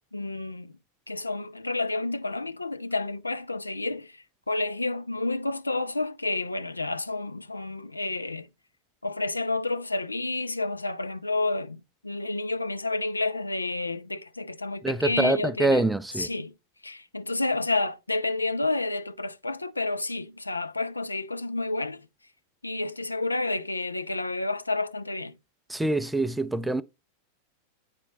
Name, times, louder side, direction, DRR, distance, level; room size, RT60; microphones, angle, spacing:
voice 1, 0.1-0.8 1.1-8.5 9.0-15.9 16.2-16.5 16.8-22.0 22.6-25.4, left 2 dB, 80° left, 0.5 m, -30 dB
voice 2, 14.8-16.3 25.7-26.8, right 2 dB, 5° right, 0.4 m, -25 dB
9.1 x 4.2 x 3.0 m
figure-of-eight pair, 90°, 0 cm